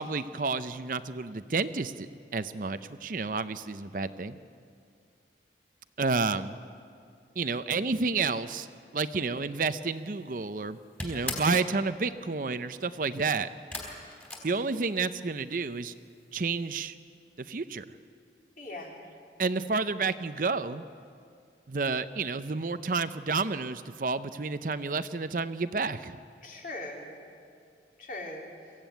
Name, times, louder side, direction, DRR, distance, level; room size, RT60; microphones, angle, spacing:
voice 1, 0.0-4.4 6.0-6.5 7.4-8.7 8.9-13.5 14.4-15.9 16.3-16.9 17.4-17.8 19.4-20.8 21.7-26.2, right 4 dB, 50° right, 12 dB, 0.6 m, -30 dB
sound 1, 10.0-10.4 10.6-11.7 13.7-15.2 15.5-16.1 16.4-16.5 16.8-16.9, left 2 dB, 10° left, 3.5 m, -38 dB
voice 2, 11.1-11.5 18.6-19.0 26.4-27.2 28.0-28.5, left 2 dB, 50° left, 0 dB, 3.6 m, -41 dB
23.0 x 15.5 x 9.2 m, 2.3 s
head